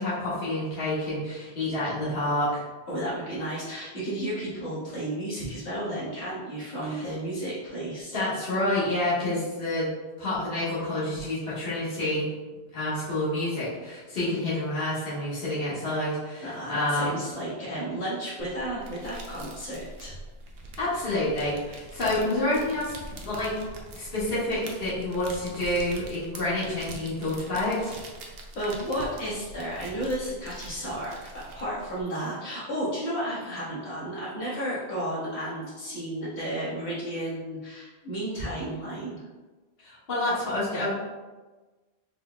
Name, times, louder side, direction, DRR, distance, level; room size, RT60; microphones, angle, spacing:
voice 1, 0.0-2.6 6.9-7.0 8.1-9.9 10.2-12.2 12.7-17.1 20.8-22.9 23.2-23.6 23.9-27.9 39.8-40.9, left 1 dB, 65° left, -11 dB, 1.6 m, -28 dB
voice 2, 2.9-8.2 16.4-20.2 28.5-39.2, right 1 dB, 90° left, -9 dB, 1.8 m, -33 dB
sound 1, 18.4-32.0, right 2 dB, 70° right, 0.8 m, -44 dB
4.6 x 3.7 x 2.2 m, 1.2 s
omnidirectional pair, 1.1 m